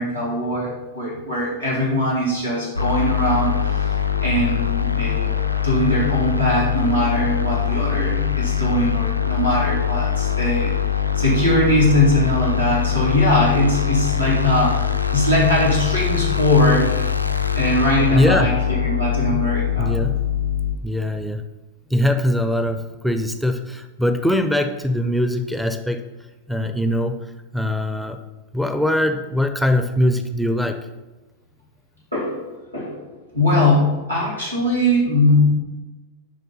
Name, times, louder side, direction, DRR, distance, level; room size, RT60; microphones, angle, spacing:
voice 1, 0.0-5.3 5.6-10.7 11.1-17.1 17.5-20.0 32.1-32.5 32.7-33.0 33.3-35.5, left 1 dB, 90° right, -6 dB, 2.4 m, -20 dB
sound 1, 2.8-20.8, left 9 dB, 90° left, 0.4 m, -22 dB
voice 2, 18.1-18.5 19.8-20.2 20.8-21.4 21.9-26.0 26.5-27.2 27.5-28.2 28.5-30.9, left 1 dB, ahead, 9 dB, 0.5 m, -21 dB
11.0 x 3.6 x 4.1 m, 1.1 s
figure-of-eight pair, 90°, 0 cm